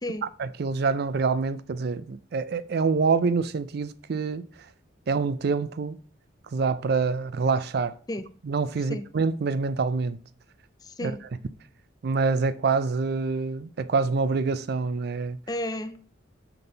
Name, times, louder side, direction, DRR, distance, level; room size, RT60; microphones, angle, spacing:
voice 1, 0.4-4.5 5.1-6.0 6.5-7.9 8.4-10.2 11.0-11.1 12.0-15.4, right 4 dB, 55° right, 0.4 m, -26 dB
voice 2, 10.8-11.2 15.5-16.1, left 1 dB, 20° left, 0.4 m, -33 dB
5.9 x 3.9 x 5.4 m
head